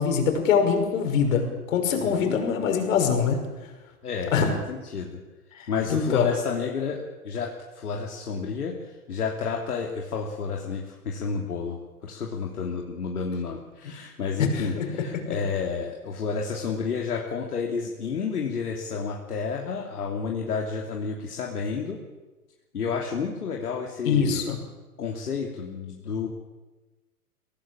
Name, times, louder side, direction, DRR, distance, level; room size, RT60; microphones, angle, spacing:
voice 1, 0.0-3.4 4.3-4.5 5.5-6.3 14.4-15.2 24.0-24.6, left 6 dB, 55° left, 4 dB, 6.1 m, -24 dB
voice 2, 1.9-2.4 4.0-5.2 5.7-11.8 12.0-22.0 22.7-24.6 25.0-26.3, left 5 dB, 75° left, 0 dB, 3.3 m, -30 dB
23.5 x 18.0 x 8.7 m, 1.2 s
figure-of-eight pair, 110°, 46 cm